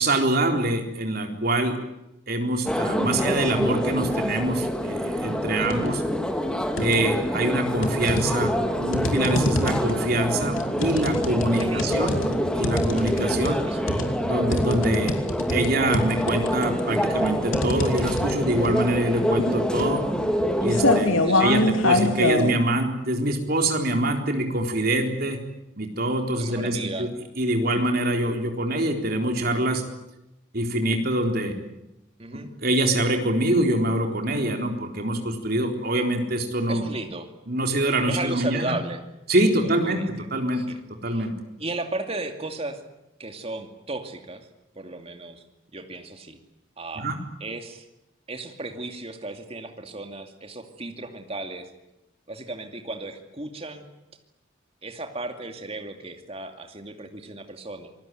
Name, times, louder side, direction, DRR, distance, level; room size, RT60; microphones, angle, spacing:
voice 1, 0.0-1.8 2.3-6.0 6.8-12.1 12.5-13.6 14.2-15.1 15.5-20.0 20.6-25.4 25.8-27.1 27.4-29.8 30.5-31.5 32.6-36.9 37.5-38.7 39.3-40.0 40.3-40.6 41.0-41.3 47.0-47.2, right 1 dB, 50° right, 4 dB, 4.0 m, -24 dB
sound 1, 2.7-21.0, equal, 5° left, 2.2 m, -26 dB
sound 2, 5.6-6.0 6.3-7.3 7.8-22.5, left 1 dB, 85° left, 3.1 m, -26 dB
voice 2, 11.6-12.1 13.7-14.2 19.1-19.3 21.2-21.7 26.4-27.1 27.7-27.8 32.2-32.5 36.7-37.3 38.1-39.0 39.6-40.3 40.5-40.8 41.1-41.3 41.6-42.8 43.2-44.5 44.8-45.4 45.7-46.4 46.8-47.1 47.4-47.9 48.3-51.7 52.3-53.8 54.8-57.9, right 2 dB, 30° right, 5 dB, 2.5 m, -35 dB
27.0 x 20.0 x 9.3 m, 0.89 s
head